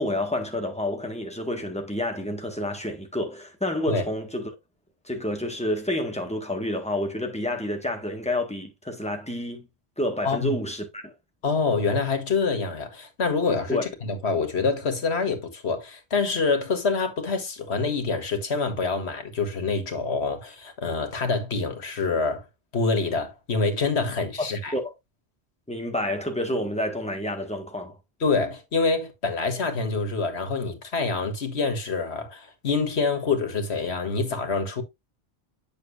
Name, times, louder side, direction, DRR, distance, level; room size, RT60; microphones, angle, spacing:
voice 1, 0.0-4.5 5.0-9.7 10.0-11.1 13.7-13.8 24.7-24.9 25.7-28.0, left 1 dB, 5° left, 1.7 m, -29 dB
voice 2, 10.2-10.6 11.4-22.4 22.7-24.7 28.2-34.8, left 4 dB, 85° left, 1.9 m, -26 dB
8.2 x 6.5 x 2.6 m
omnidirectional pair, 1.1 m